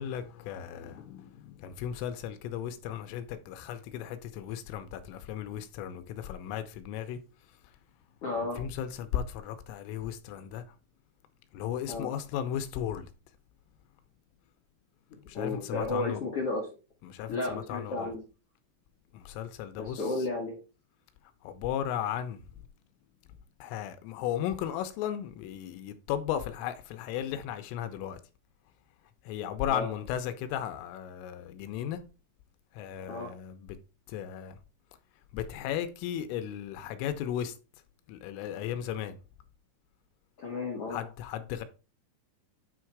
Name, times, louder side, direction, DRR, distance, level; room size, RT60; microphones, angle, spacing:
voice 1, 0.0-7.2 8.6-10.6 11.5-13.1 15.3-16.2 17.0-18.1 19.1-20.3 21.4-22.4 23.6-28.2 29.3-32.0 32.7-33.8 34.1-34.6 35.3-37.6 38.1-39.2 40.9-41.6, left 10 dB, 85° left, 3.3 m, -35 dB
voice 2, 8.2-8.6 11.9-12.1 15.1-16.7 17.3-18.2 19.8-20.6 29.7-29.9 33.1-33.3 40.4-41.0, left 2 dB, 55° left, 1.6 m, -33 dB
9.3 x 3.7 x 4.6 m
omnidirectional pair, 5.7 m